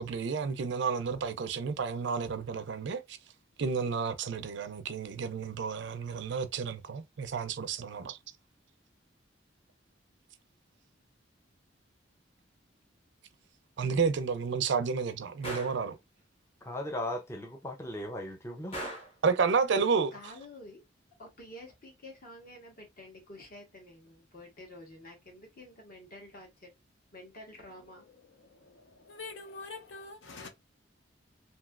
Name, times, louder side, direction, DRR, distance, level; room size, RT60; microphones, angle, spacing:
voice 1, 0.0-3.2 3.6-8.2 13.8-16.0 19.2-20.1, right 5 dB, 65° right, 0.4 m, -31 dB
Gunshot gunfire, 15.4-15.9 18.7-19.2, right 1 dB, 30° left, 1.1 m, -39 dB
voice 2, 16.6-18.9, left 1 dB, 15° left, 0.5 m, -37 dB
voice 3, 20.1-20.8 21.2-26.7 27.1-28.1, left 1 dB, 50° left, 1.4 m, -49 dB
voice 4, 28.4-30.5, left 3 dB, 70° left, 0.7 m, -45 dB
3.0 x 2.8 x 2.4 m
head